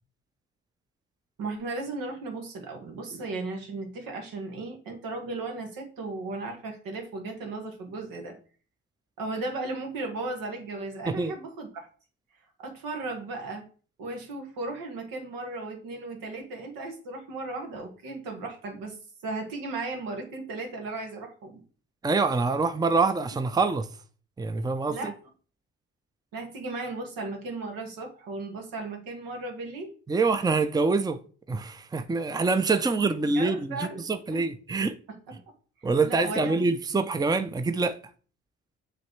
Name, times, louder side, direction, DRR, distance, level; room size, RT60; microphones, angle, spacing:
voice 1, 1.4-8.4 9.2-11.9 12.6-13.6 14.0-19.0 19.2-21.6 24.9-25.1 26.3-29.9 33.3-34.0 34.3-34.4 36.0-36.6, right 2 dB, 80° right, 1.7 m, -36 dB
voice 2, 22.0-23.9 24.4-25.1 30.1-31.2 31.5-34.9 35.8-38.0, right 3 dB, 10° right, 0.6 m, -25 dB
7.6 x 3.2 x 4.6 m
supercardioid pair, 55°, 34 cm